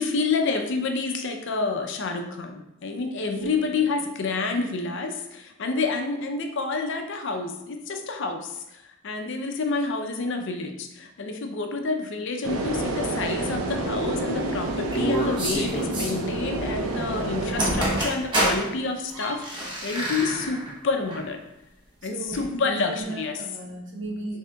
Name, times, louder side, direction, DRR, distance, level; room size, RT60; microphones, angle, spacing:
voice 1, 0.0-21.4 22.0-23.4, left 4 dB, 55° left, 4 dB, 0.5 m, -29 dB
sound 1, 12.4-18.0, right 2 dB, 75° right, 0.6 m, -29 dB
sound 2, 14.9-16.1 17.3-17.4 17.6-18.6 19.1-20.7 21.1-21.2 22.3-22.4, right 1 dB, 20° right, 0.8 m, -27 dB
voice 2, 22.0-24.4, right 3 dB, 55° right, -1 dB, 0.9 m, -36 dB
6.4 x 3.5 x 2.3 m, 0.90 s
head